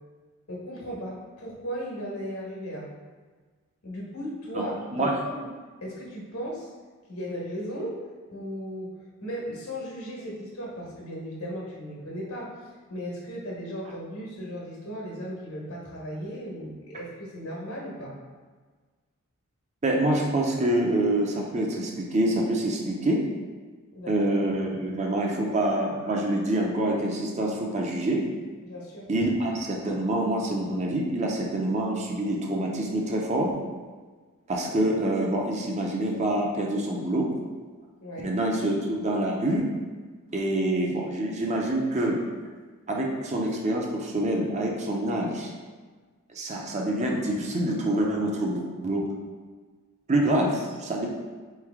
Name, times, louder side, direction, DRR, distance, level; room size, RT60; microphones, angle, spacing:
voice 1, 0.5-2.9 3.8-4.7 5.0-5.5 5.8-6.7 7.1-8.0 8.3-8.9 9.2-12.5 12.9-18.1 23.9-24.1 28.6-29.0 38.0-38.3, equal, 80° left, -3 dB, 1.4 m, -36 dB
voice 2, 4.5-5.2 19.8-23.3 24.1-28.3 29.1-33.5 34.5-37.3 38.2-39.8 40.3-42.2 42.9-45.5 46.3-49.1 50.1-51.1, right 1 dB, 30° right, -1 dB, 0.5 m, -26 dB
4.0 x 3.2 x 3.5 m, 1.4 s
head